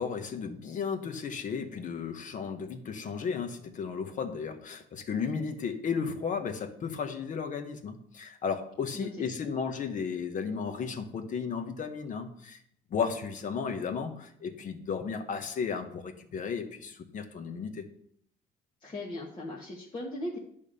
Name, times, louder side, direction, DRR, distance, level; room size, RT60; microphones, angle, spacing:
voice 1, 0.0-12.6 12.9-17.9, left 6 dB, 50° left, 7 dB, 1.2 m, -34 dB
voice 2, 8.9-9.4 18.8-20.4, left 1 dB, 30° left, -4 dB, 1.5 m, -38 dB
10.5 x 3.6 x 6.8 m, 0.70 s
cardioid pair, 110°, 17 cm